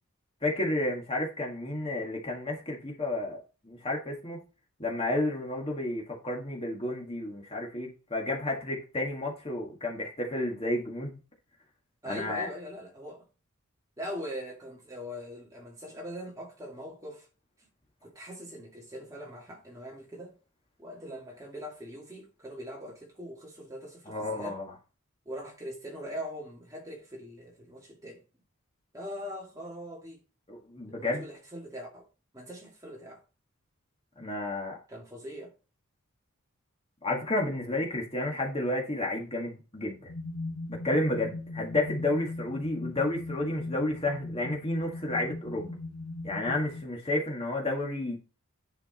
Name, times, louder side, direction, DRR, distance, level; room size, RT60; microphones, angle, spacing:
voice 1, 0.4-3.4 3.7-4.4 4.8-11.2 12.0-12.5 24.1-24.6 30.5-31.2 34.2-34.8 37.0-40.1 40.7-45.8 46.2-48.2, left 1 dB, 25° left, 1.8 m, -31 dB
voice 2, 12.0-13.2 14.0-17.3 18.0-20.3 20.8-24.6 25.3-28.2 28.9-30.2 30.9-32.1 32.3-33.2 34.9-35.5, equal, 15° right, 2.4 m, -41 dB
sound 1, 40.1-46.9, left 2 dB, 90° left, 1.2 m, -39 dB
10.5 x 5.0 x 4.3 m
head